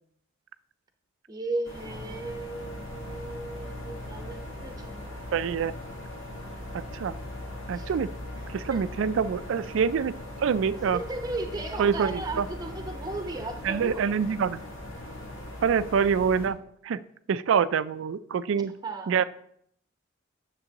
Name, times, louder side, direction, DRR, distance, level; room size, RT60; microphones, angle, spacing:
voice 1, 1.3-5.3 7.7-7.9 8.7-8.8 10.8-14.2 18.8-19.2, right 2 dB, 20° right, 4 dB, 0.9 m, -36 dB
sound 1, 1.6-16.5, left 1 dB, 80° left, 1.6 m, -39 dB
voice 2, 5.3-5.7 6.7-7.2 7.7-8.1 8.5-11.0 11.8-12.5 13.6-14.6 15.6-16.6 16.8-17.0 17.3-18.8 19.1-19.2, right 6 dB, 70° right, 15 dB, 0.3 m, -26 dB
9.4 x 6.8 x 2.9 m, 0.69 s
head